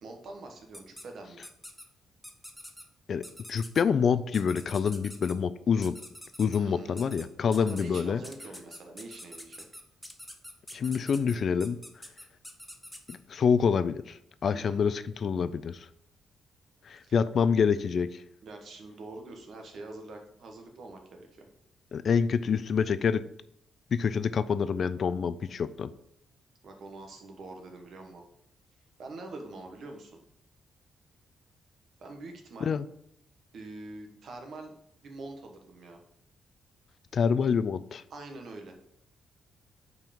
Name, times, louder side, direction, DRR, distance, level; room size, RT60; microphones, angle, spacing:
voice 1, 0.0-1.4 6.5-9.6 14.5-14.8 17.0-17.1 18.4-21.5 26.6-28.2 29.0-30.2 32.0-32.7 33.5-34.7 35.0-36.0 38.1-38.7, right 2 dB, 55° right, 4 dB, 1.3 m, -45 dB
sound 1, 0.7-1.0 1.4-1.8 2.2-2.8 3.2-3.8 4.3-5.3 5.8-6.6 7.0-7.2 7.5-13.2, equal, ahead, 0.7 m, -45 dB
voice 2, 3.1-6.0 6.4-8.2 10.7-11.8 13.1-15.9 16.9-18.2 21.9-23.2 23.9-25.9 32.6-32.8 37.1-38.0, left 6 dB, 50° left, 14 dB, 0.3 m, -27 dB
5.6 x 4.6 x 5.2 m, 0.73 s
cardioid pair, 135°, 0 cm